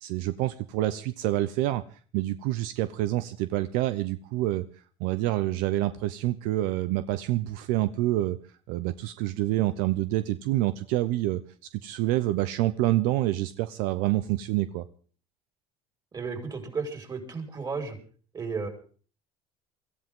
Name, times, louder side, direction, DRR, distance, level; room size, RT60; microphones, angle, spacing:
voice 1, 0.0-1.8 2.1-4.6 5.0-8.4 8.7-11.4 11.8-14.8, right 15 dB, 75° right, 13 dB, 0.7 m, -27 dB
voice 2, 16.1-18.0 18.3-18.7, right 4 dB, 30° right, 4 dB, 5.1 m, -33 dB
23.5 x 14.0 x 3.8 m, 0.41 s
supercardioid pair, 100°, 14 cm